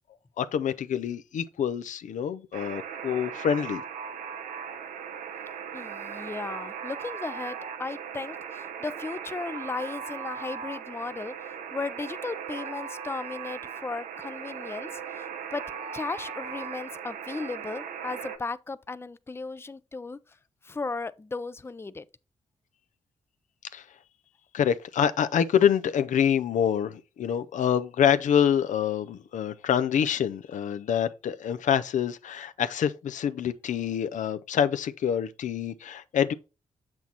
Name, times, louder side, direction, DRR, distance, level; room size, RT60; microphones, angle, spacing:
voice 1, 0.4-3.8 23.7-23.8 24.5-36.3, left 8 dB, 70° left, 0.5 m, -26 dB
Alarm, 2.5-18.4, right 7 dB, 85° right, 0.8 m, -38 dB
voice 2, 5.7-15.6 15.9-20.4 20.6-22.1, left 3 dB, 20° left, 0.5 m, -36 dB
7.1 x 6.1 x 2.9 m
supercardioid pair, 50°, 13 cm